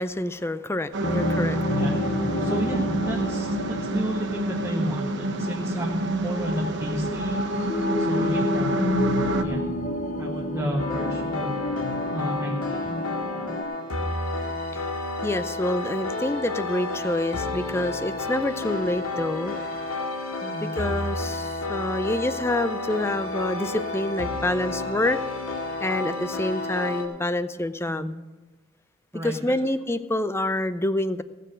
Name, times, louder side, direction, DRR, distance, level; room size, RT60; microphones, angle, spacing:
voice 1, 0.0-1.6 14.7-14.8 15.2-19.6 20.6-25.2 25.8-28.2 29.2-31.2, left 1 dB, 10° left, 13 dB, 0.4 m, -27 dB
sound 1, 0.9-9.4, right 2 dB, 55° right, 0.9 m, -29 dB
sound 2, 1.0-13.6, left 2 dB, 35° left, 0.9 m, -29 dB
voice 2, 2.4-7.4 8.0-8.9 9.4-9.6 10.2-11.6 12.1-12.9 20.4-20.7 27.9-28.1 29.1-29.6, equal, 15° right, -2 dB, 1.0 m, -31 dB
sound 3, 10.8-27.1, left 2 dB, 80° left, 2.0 m, -31 dB
17.0 x 6.7 x 6.2 m, 1.2 s
head